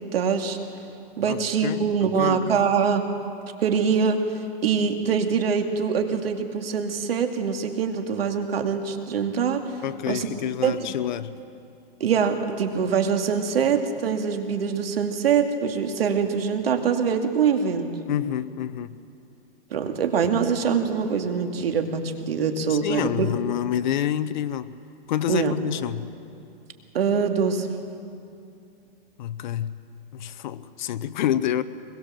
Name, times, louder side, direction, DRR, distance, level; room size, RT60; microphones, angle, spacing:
voice 1, 0.1-0.6 1.2-3.0 3.6-4.2 4.6-9.8 10.1-10.3 10.6-10.9 12.0-17.9 19.7-23.3 25.3-25.5 26.9-27.7, right 6 dB, 80° right, 5 dB, 2.5 m, -24 dB
voice 2, 1.2-2.6 9.8-11.4 18.1-19.0 22.7-24.8 25.1-26.1 29.2-29.8 30.1-31.6, left 11 dB, 50° left, 13 dB, 0.9 m, -28 dB
23.0 x 21.5 x 7.5 m, 2.6 s
hypercardioid pair, 165°, 29 cm